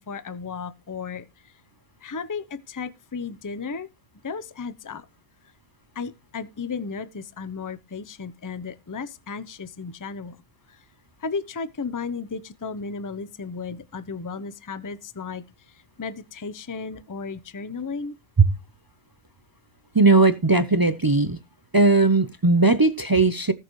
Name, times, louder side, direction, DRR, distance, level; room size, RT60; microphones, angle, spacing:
voice 1, 0.0-1.5 2.0-3.9 4.2-5.1 5.9-10.4 10.7-10.8 11.2-18.2, left 5 dB, 20° left, 0.6 m, -34 dB
voice 2, 19.9-21.4 21.7-23.5, right 3 dB, 30° right, 0.4 m, -18 dB
19.5 x 6.6 x 3.1 m
omnidirectional pair, 1.3 m